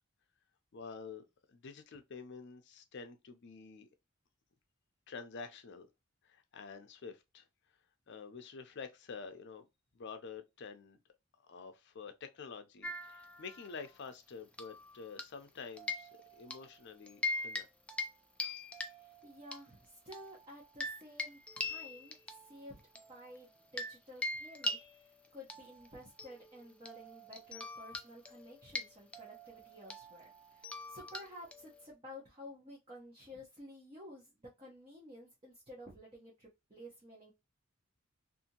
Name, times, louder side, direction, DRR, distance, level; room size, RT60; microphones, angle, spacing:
voice 1, 0.7-3.9 5.1-5.9 6.2-7.4 8.1-9.6 9.9-11.0 11.4-17.7, left 5 dB, 55° left, 0.5 m, -48 dB
sound 1, 12.8-13.9 14.5-15.5 15.8-16.7 17.1-17.6 17.9-18.1 18.4-19.6 20.1-24.0 24.2-31.9, left 2 dB, 5° left, 0.3 m, -42 dB
voice 2, 19.0-22.1 22.4-22.8 23.1-37.3, equal, 25° right, 0.8 m, -52 dB
2.7 x 2.5 x 2.7 m
head